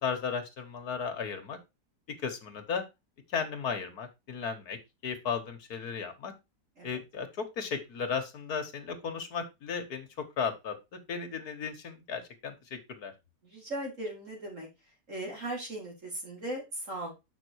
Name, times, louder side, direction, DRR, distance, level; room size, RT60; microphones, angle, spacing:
voice 1, 0.0-1.6 2.2-2.8 3.3-4.8 5.0-6.3 6.8-10.1 10.4-13.1, left 6 dB, 60° left, 6 dB, 1.9 m, -35 dB
voice 2, 13.4-14.7 15.1-17.1, right 1 dB, 45° right, -3 dB, 5.0 m, -38 dB
6.9 x 6.0 x 4.7 m, 0.24 s
omnidirectional pair, 1.9 m